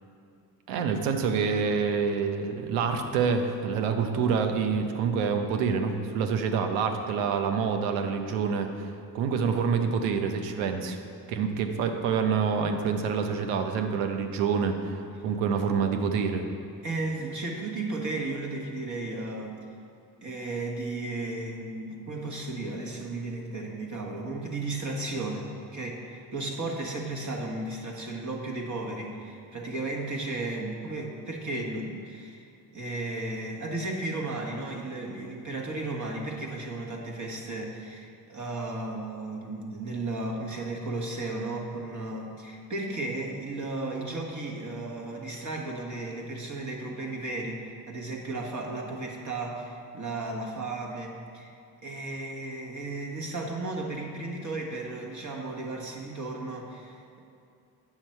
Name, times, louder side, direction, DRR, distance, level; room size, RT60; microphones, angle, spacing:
voice 1, 0.7-8.9 9.1-11.0 11.3-16.5, right 6 dB, 85° right, 5 dB, 0.8 m, -27 dB
voice 2, 16.8-19.5 20.2-32.5 32.7-51.5 51.8-57.2, right 2 dB, 40° right, 0 dB, 1.4 m, -34 dB
8.2 x 5.9 x 4.5 m, 2.5 s
supercardioid pair, 65°, 47 cm